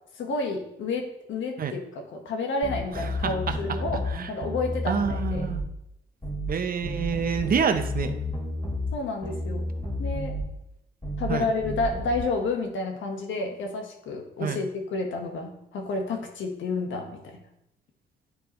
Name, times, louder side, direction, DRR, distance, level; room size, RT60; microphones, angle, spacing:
voice 1, 0.2-5.5 8.9-9.7 10.0-10.4 11.2-17.4, left 3 dB, 70° left, 3 dB, 1.3 m, -30 dB
sound 1, 2.6-4.1 4.4-5.7 6.2-6.5 6.8-8.9 9.2-10.5 11.0-11.3 11.6-12.2, left 1 dB, 15° left, 2.7 m, -31 dB
voice 2, 2.9-3.6 4.1-4.3 4.9-5.6 6.5-8.1 11.3-11.5 14.4-14.6, right 6 dB, 45° right, 8 dB, 0.7 m, -27 dB
9.9 x 4.7 x 3.1 m, 0.82 s
cardioid pair, 90°, 20 cm